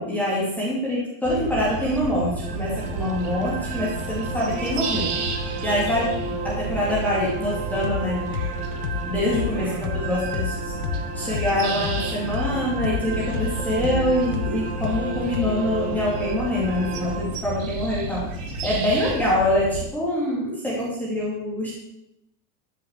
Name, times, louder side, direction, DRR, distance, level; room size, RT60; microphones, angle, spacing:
voice 1, 0.0-5.1 5.6-8.2 9.0-10.7 11.1-21.7, left 1 dB, 5° left, -7 dB, 2.5 m, -25 dB
sound 1, 1.2-19.8, right 2 dB, 80° right, 3.1 m, -32 dB
sound 2, 2.4-17.2, right 4 dB, 15° right, 1.1 m, -34 dB
sound 3, 7.8-8.0 8.3-12.0 12.3-15.8, left 13 dB, 80° left, 0.8 m, -30 dB
13.5 x 6.7 x 7.4 m, 0.84 s
supercardioid pair, 175°, 44 cm